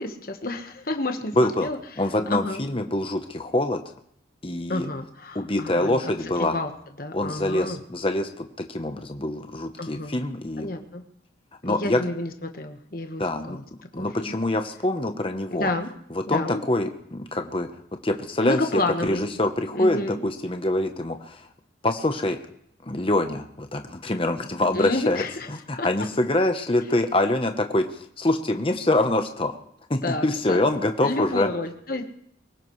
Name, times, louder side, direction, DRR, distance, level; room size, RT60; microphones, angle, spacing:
voice 1, 0.0-1.8 2.3-2.6 4.7-6.0 6.4-6.7 7.0-7.8 9.8-10.2 10.6-11.0 11.6-13.6 14.0-14.3 15.5-15.9 16.3-16.6 18.4-19.3 19.7-20.2 24.7-25.5 25.8-25.9 30.0-30.6 31.0-32.0, left 2 dB, 50° left, 5 dB, 1.3 m, -30 dB
voice 2, 1.3-1.7 2.0-3.8 4.4-4.9 5.3-6.5 7.1-10.7 11.6-12.0 13.2-13.6 13.9-15.7 16.1-17.7 18.0-21.5 21.8-22.4 22.8-29.6 29.9-31.5, left 1 dB, 30° left, 6 dB, 0.9 m, -25 dB
24.0 x 16.5 x 3.2 m, 0.70 s
head